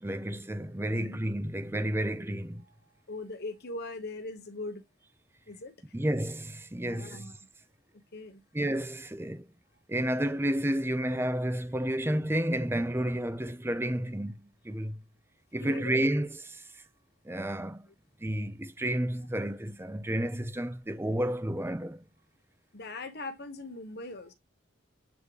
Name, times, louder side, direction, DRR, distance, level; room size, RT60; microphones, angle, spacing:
voice 1, 0.0-2.6 5.9-7.3 8.5-9.5 9.9-15.0 15.5-16.8 17.2-17.9 18.2-22.0, right 1 dB, 10° right, 0.6 m, -31 dB
voice 2, 2.8-4.8 5.5-5.9 6.9-7.4 7.9-8.4 15.6-15.9 22.7-24.3, left 2 dB, 55° left, 1.1 m, -41 dB
8.1 x 3.7 x 3.3 m
head